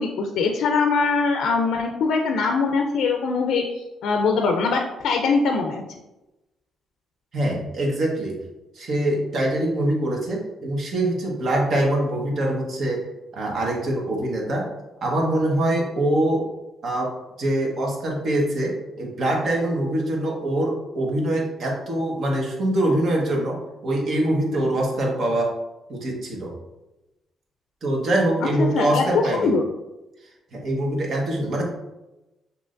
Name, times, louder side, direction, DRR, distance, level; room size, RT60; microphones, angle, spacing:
voice 1, 0.0-3.6 4.0-5.8 28.6-29.0 29.3-29.6, left 4 dB, 75° left, 3 dB, 0.4 m, -22 dB
voice 2, 7.3-8.3 8.7-13.0 13.3-14.7 15.0-16.5 16.8-17.1 17.4-23.6 23.8-25.5 25.9-26.5 27.8-29.5 30.5-31.6, right 1 dB, 60° right, -1 dB, 1.3 m, -24 dB
6.0 x 2.8 x 2.5 m, 0.99 s
cardioid pair, 90°, 0 cm